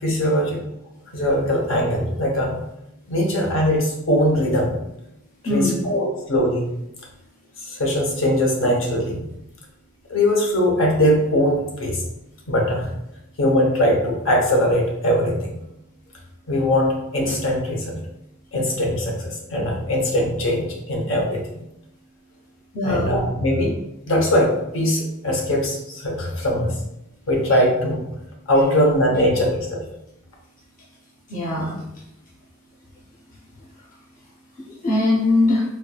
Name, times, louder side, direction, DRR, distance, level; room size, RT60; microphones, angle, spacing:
voice 1, 0.0-0.6 1.1-2.6 3.1-4.8 5.4-6.6 7.6-9.2 10.1-12.0 12.5-12.9 13.4-15.6 16.5-18.0 18.5-21.4 22.8-23.7 24.1-26.8 27.3-28.1 28.5-29.8, equal, 70° left, 0 dB, 0.8 m, -21 dB
voice 2, 5.4-5.9 22.7-23.1 31.3-31.8 34.8-35.6, left 2 dB, 40° left, -6 dB, 0.6 m, -21 dB
4.4 x 2.4 x 2.3 m, 0.85 s
head